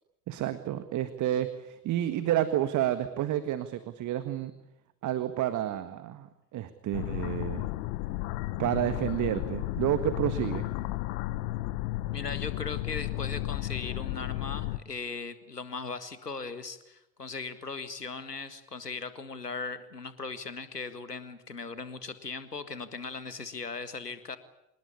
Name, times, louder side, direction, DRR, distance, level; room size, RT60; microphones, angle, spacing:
voice 1, 0.3-4.5 5.0-7.7 8.6-10.7, right 12 dB, 40° right, 11 dB, 1.7 m, -30 dB
sound 1, 6.9-14.8, left 17 dB, 55° left, 1.3 m, -33 dB
voice 2, 12.1-24.4, left 4 dB, 90° left, 12 dB, 1.9 m, -38 dB
26.5 x 21.0 x 8.5 m, 0.87 s
figure-of-eight pair, 70°, 46 cm